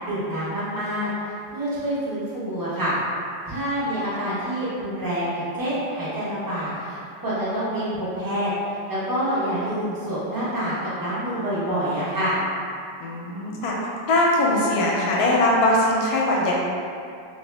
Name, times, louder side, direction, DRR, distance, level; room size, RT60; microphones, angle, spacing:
voice 1, 0.0-1.1 1.5-2.9 3.5-12.4, equal, 20° right, -11 dB, 0.5 m, -27 dB
voice 2, 13.0-13.7 14.1-16.5, left 1 dB, 70° left, -4 dB, 1.0 m, -21 dB
2.9 x 2.8 x 3.3 m, 2.4 s
omnidirectional pair, 2.0 m